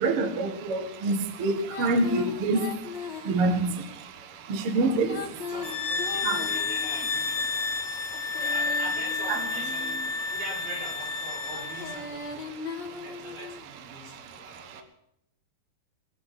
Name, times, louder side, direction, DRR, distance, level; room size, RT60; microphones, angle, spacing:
voice 1, 0.0-1.5 1.8-2.6 3.3-3.7 4.7-5.1 6.2-6.4 9.3-9.4, right 3 dB, 60° right, 1.5 m, -25 dB
Female singing, 1.7-3.8 4.9-7.3 8.0-10.2 11.5-13.7, left 4 dB, 50° left, 2.4 m, -39 dB
voice 2, 5.2-7.6 8.3-10.0 10.3-12.5 12.9-14.8, right 2 dB, 85° right, 7.4 m, -42 dB
sound 1, 5.6-12.0, left 4 dB, 85° left, 1.3 m, -30 dB
21.0 x 8.7 x 7.7 m
omnidirectional pair, 5.1 m